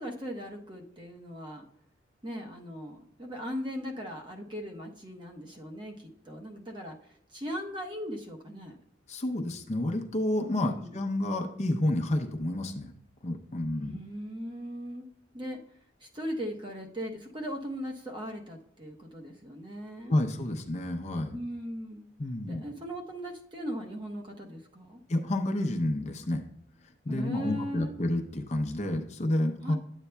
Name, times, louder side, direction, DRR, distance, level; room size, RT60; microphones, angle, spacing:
voice 1, 0.0-1.6 2.2-7.0 7.3-8.8 10.5-11.0 13.8-15.1 15.3-15.6 16.0-20.2 21.3-22.1 22.5-25.0 27.1-27.9 29.6-29.7, equal, 25° right, 1 dB, 0.8 m, -38 dB
voice 2, 9.1-12.9 13.2-14.0 20.1-21.4 22.2-22.6 25.1-26.4 27.0-29.7, left 1 dB, 35° left, 4 dB, 0.6 m, -30 dB
10.5 x 8.1 x 2.2 m, 0.71 s
head